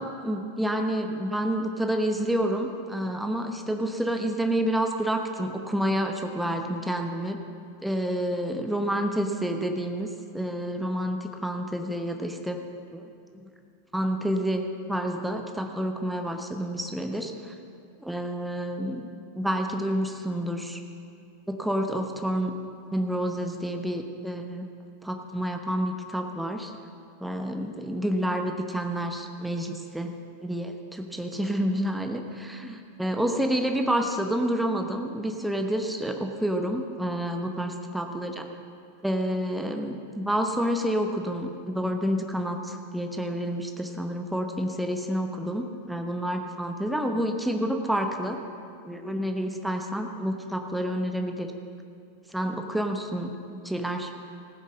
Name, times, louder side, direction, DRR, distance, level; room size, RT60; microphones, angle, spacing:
voice 1, 0.0-7.4 7.8-10.1 10.3-12.6 12.9-13.0 13.3-13.5 13.9-17.5 18.0-19.1 19.3-20.8 21.5-22.5 22.9-24.7 25.0-26.7 27.2-30.1 30.4-38.5 39.0-48.4 48.8-51.5 52.3-54.1, equal, 5° right, 4 dB, 1.0 m, -29 dB
16.0 x 9.6 x 6.2 m, 2.4 s
figure-of-eight pair, 90°, 0 cm